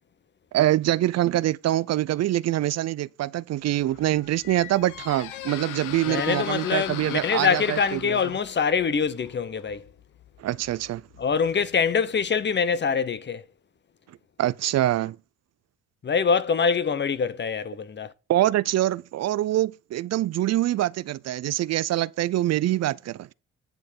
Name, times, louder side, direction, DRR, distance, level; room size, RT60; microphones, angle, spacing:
voice 1, 0.5-8.2 10.4-11.0 14.4-15.2 18.3-23.3, right 14 dB, 60° right, 0.4 m, -24 dB
Squeak, 3.7-12.4, left 11 dB, 85° left, 1.0 m, -40 dB
voice 2, 6.1-9.9 11.2-13.4 16.0-18.1, left 6 dB, 35° left, 0.9 m, -24 dB
10.0 x 6.5 x 5.2 m
cardioid pair, 90°, 30 cm